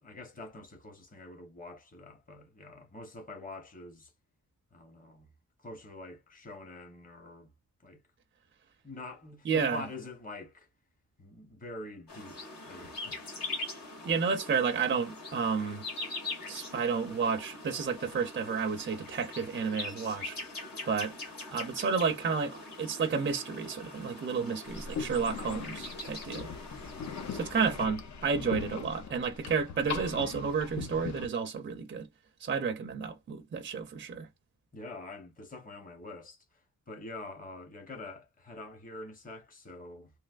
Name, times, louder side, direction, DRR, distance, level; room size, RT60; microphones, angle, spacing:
voice 1, 0.0-4.1 4.7-5.3 5.6-7.5 7.8-8.0 8.8-10.7 11.2-12.4 12.7-13.8 34.7-36.4 36.9-40.1, left 2 dB, 25° left, 0.9 m, -45 dB
voice 2, 9.5-9.8 14.0-15.8 16.5-20.4 20.9-21.1 21.5-26.5 27.3-32.1 32.4-34.3, right 5 dB, 35° right, 0.4 m, -31 dB
sound 1, 12.1-27.9, left 2 dB, 75° left, 1.6 m, -43 dB
sound 2, 24.7-31.3, left 6 dB, 55° left, 0.6 m, -40 dB
3.1 x 2.8 x 2.3 m
wide cardioid pair, 135°, 34 cm